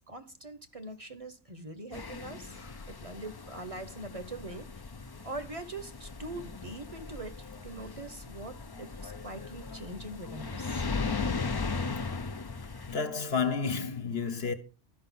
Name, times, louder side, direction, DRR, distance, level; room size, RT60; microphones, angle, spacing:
voice 1, 0.0-4.8 5.2-10.9, right 2 dB, 35° right, 0.8 m, -43 dB
sound 1, 1.9-13.0, left 4 dB, 35° left, 0.4 m, -38 dB
voice 2, 12.9-14.5, left 5 dB, 65° left, 1.3 m, -32 dB
12.5 x 5.4 x 5.5 m
omnidirectional pair, 1.1 m